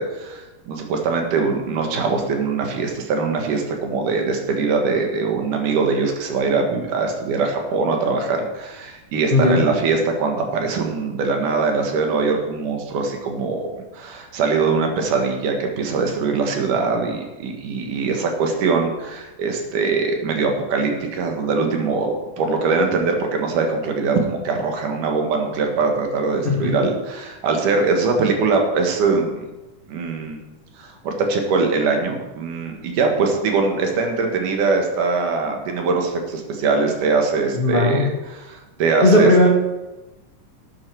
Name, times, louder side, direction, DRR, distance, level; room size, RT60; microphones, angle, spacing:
voice 1, 0.0-29.4 29.9-30.4 30.8-39.5, right 4 dB, 75° right, 3 dB, 3.0 m, -22 dB
voice 2, 9.3-9.6 26.4-26.7 37.5-38.1 39.0-39.5, left 2 dB, 40° left, -3 dB, 0.7 m, -16 dB
12.0 x 8.7 x 4.6 m, 1.1 s
omnidirectional pair, 3.7 m